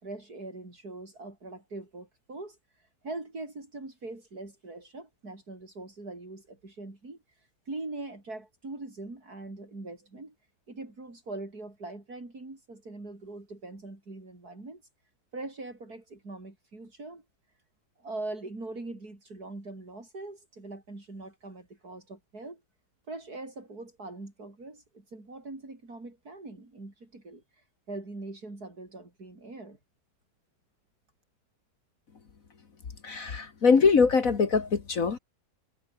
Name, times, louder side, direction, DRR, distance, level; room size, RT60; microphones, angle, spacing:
voice 1, 0.0-10.3 10.7-14.8 15.3-17.2 18.0-22.6 23.1-29.8, right 2 dB, 65° right, 6.2 m, -42 dB
voice 2, 33.0-35.2, left 5 dB, 55° left, 2.1 m, -23 dB
omnidirectional pair, 1.7 m